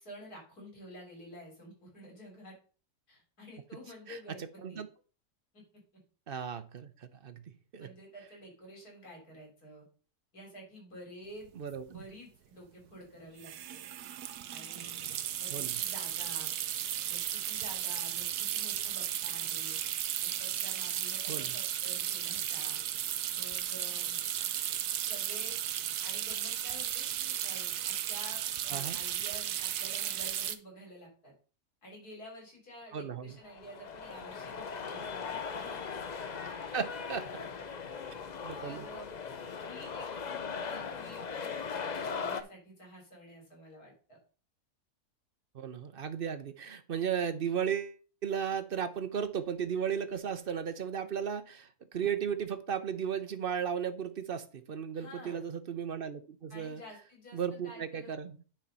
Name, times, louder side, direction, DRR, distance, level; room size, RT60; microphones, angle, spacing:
voice 1, 0.0-2.6 3.1-4.8 5.5-5.6 7.8-9.8 10.3-11.5 11.9-13.8 14.5-15.0 15.4-16.5 17.0-19.8 20.2-22.8 23.3-24.2 25.0-25.6 26.0-31.3 31.8-35.8 37.3-37.7 38.6-39.2 39.6-44.2 54.9-55.4 56.5-58.1, equal, 80° left, -1 dB, 4.1 m, -50 dB
voice 2, 6.3-7.4 7.7-7.9 11.6-12.0 15.5-15.7 21.3-21.5 28.7-29.0 32.9-33.3 36.7-37.2 38.4-38.8 45.5-56.8 57.3-58.4, right 7 dB, 50° right, 11 dB, 0.7 m, -35 dB
sound 1, 11.4-11.5 11.7-12.0 13.4-30.6, right 11 dB, 85° right, 1.2 m, -35 dB
sound 2, 33.4-42.4, left 6 dB, 55° left, 0.4 m, -39 dB
9.8 x 4.4 x 5.4 m, 0.39 s
omnidirectional pair, 1.6 m